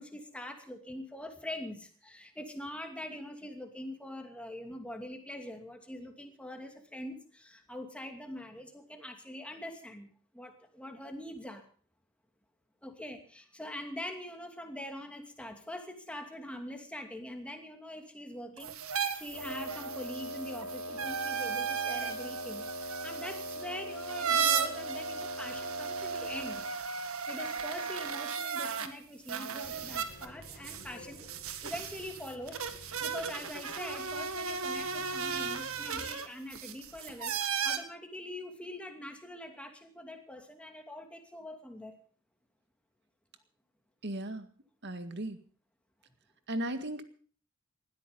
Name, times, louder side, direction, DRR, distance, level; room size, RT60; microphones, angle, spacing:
voice 1, 0.0-10.1 10.3-11.6 12.8-26.7 27.3-31.3 31.6-37.3 37.6-42.0, left 1 dB, 5° left, 4 dB, 2.6 m, -43 dB
sound 1, 18.6-28.9 29.3-37.8, right 6 dB, 85° right, 1.8 m, -35 dB
Wind instrument woodwind instrument, 19.3-26.7, equal, 85° left, 4.0 m, -41 dB
sound 2, 29.6-36.1, left 1 dB, 45° left, 4.0 m, -53 dB
voice 2, 44.0-44.5 44.8-45.4 46.5-47.0, right 1 dB, 55° right, 9 dB, 2.0 m, -36 dB
19.5 x 13.5 x 5.3 m, 0.43 s
head